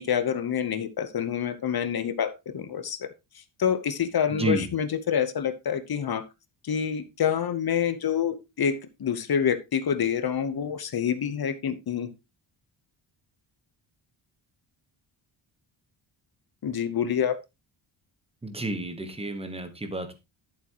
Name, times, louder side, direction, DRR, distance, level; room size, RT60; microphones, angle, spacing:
voice 1, 0.0-3.1 3.6-6.2 6.6-12.1 16.6-17.3, left 8 dB, 50° left, 11 dB, 1.0 m, -27 dB
voice 2, 4.3-4.7 18.4-20.1, right 2 dB, 10° right, 8 dB, 1.2 m, -30 dB
11.5 x 7.3 x 2.9 m, 0.24 s
wide cardioid pair, 180°, 48 cm